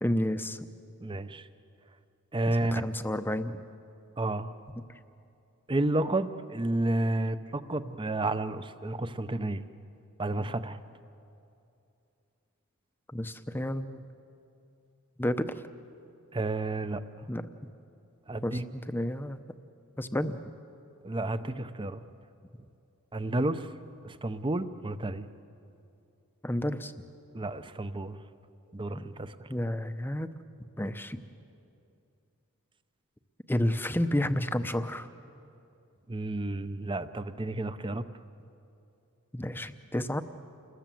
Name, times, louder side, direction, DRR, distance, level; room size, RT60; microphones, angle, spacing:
voice 1, 0.0-0.7 2.5-3.6 13.1-14.0 15.2-15.6 17.3-17.5 18.4-19.4 20.0-20.4 26.4-26.9 28.9-29.1 29.5-30.3 30.8-31.2 33.5-35.1 39.3-40.2, left 1 dB, 10° left, 10 dB, 0.7 m, -31 dB
voice 2, 1.0-1.5 2.3-2.9 4.2-4.5 5.7-9.6 10.2-10.8 16.3-17.0 18.3-18.6 21.0-22.0 23.1-23.7 24.0-25.3 27.3-28.2 28.7-29.5 36.1-38.0, right 2 dB, 20° right, 12 dB, 0.7 m, -31 dB
29.0 x 21.0 x 7.7 m, 2.7 s
head